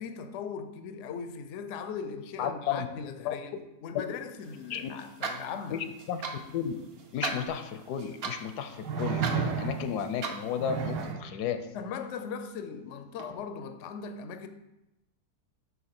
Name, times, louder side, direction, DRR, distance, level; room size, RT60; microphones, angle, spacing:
voice 1, 0.0-5.8 11.7-14.5, left 6 dB, 65° left, 0.8 m, -39 dB
voice 2, 2.4-2.9 3.2-3.3 4.7-4.9 5.7-6.2 6.5-6.7 7.1-11.7, left 8 dB, 80° left, 1.2 m, -33 dB
sound 1, 4.4-11.1, right 4 dB, 50° right, 0.8 m, -40 dB
sound 2, 7.5-7.6 8.8-10.0 10.6-11.3 13.2-13.3, right 6 dB, 85° right, 1.2 m, -32 dB
7.9 x 2.9 x 5.8 m
omnidirectional pair, 1.7 m